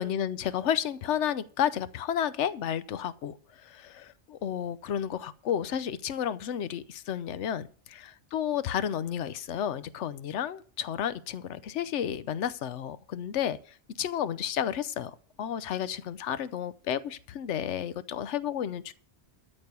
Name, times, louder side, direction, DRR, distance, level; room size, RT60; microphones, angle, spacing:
voice 1, 0.0-18.9, left 9 dB, 80° left, 1.0 m, -32 dB
13.0 x 5.4 x 8.2 m
omnidirectional pair, 1.2 m